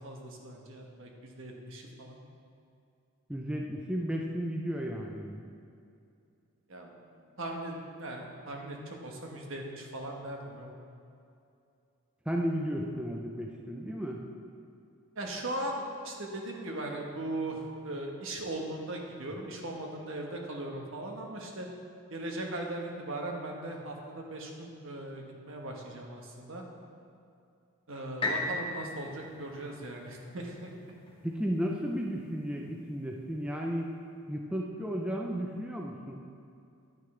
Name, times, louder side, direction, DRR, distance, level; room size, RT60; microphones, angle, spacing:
voice 1, 0.0-2.2 6.7-6.9 7.4-10.7 15.2-21.7 22.1-26.6 27.9-30.7, right 1 dB, 65° right, 1 dB, 1.2 m, -39 dB
voice 2, 3.3-5.4 12.3-14.2 28.3-28.4 31.2-33.9 34.3-36.3, equal, 5° right, 0 dB, 0.5 m, -34 dB
sound 1, 28.2-32.1 32.7-32.8, left 2 dB, 25° left, 1.0 m, -37 dB
10.5 x 9.5 x 3.2 m, 2.5 s
head